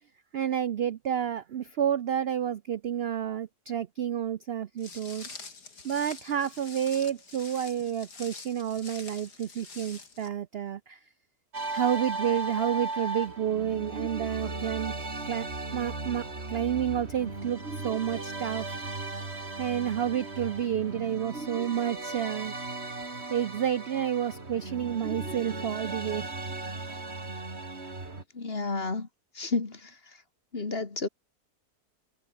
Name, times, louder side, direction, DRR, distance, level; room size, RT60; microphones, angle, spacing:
voice 1, 0.3-5.3 5.8-11.0 11.7-14.9 15.2-15.5 15.7-18.8 19.6-22.5 23.3-26.3, right 9 dB, 60° right, 0.6 m, -30 dB
Walk footsteps, 4.8-10.3, left 4 dB, 85° left, 3.9 m, -46 dB
sound 1, 11.5-28.2, right 3 dB, 40° right, 3.6 m, -36 dB
voice 2, 28.3-29.1 29.4-29.9 30.5-31.1, left 3 dB, 40° left, 2.3 m, -31 dB
omnidirectional pair, 1.7 m